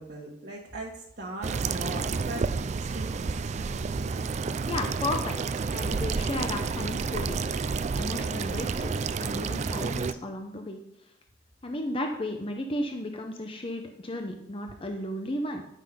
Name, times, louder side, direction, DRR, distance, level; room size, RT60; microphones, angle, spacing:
voice 1, 0.0-2.5 2.8-3.8, right 1 dB, 55° right, -5 dB, 1.5 m, -39 dB
sound 1, 1.4-10.1, right 4 dB, 40° right, 0.4 m, -30 dB
voice 2, 4.6-10.8 11.6-15.6, left 1 dB, 30° left, 4 dB, 0.7 m, -34 dB
10.0 x 5.6 x 5.1 m, 0.83 s
head